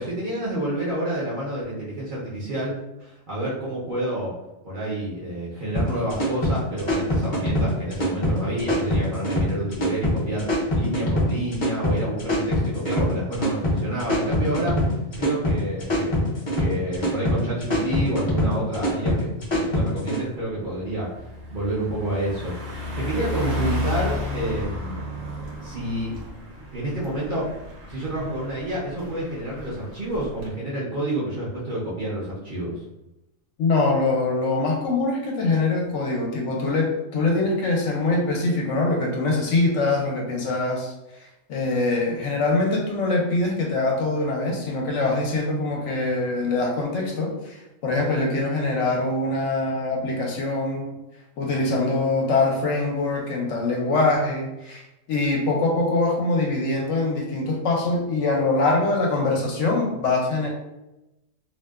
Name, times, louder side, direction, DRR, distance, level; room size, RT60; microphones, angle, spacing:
voice 1, 0.0-2.7 3.0-4.3 4.6-10.5 10.7-14.9 15.2-16.1 16.6-25.0 25.6-26.1 26.7-27.4 27.9-32.8, right 1 dB, 50° right, -7 dB, 0.6 m, -29 dB
sound 1, 5.7-20.2, left 1 dB, 35° left, 0.5 m, -23 dB
Car passing by, 18.9-19.1 19.5-30.5, left 1 dB, 85° right, 1.1 m, -33 dB
voice 2, 33.6-40.9 41.2-50.9 51.4-54.8 55.1-60.5, left 2 dB, 75° left, -1 dB, 0.9 m, -23 dB
2.6 x 2.1 x 2.2 m, 0.92 s
omnidirectional pair, 1.3 m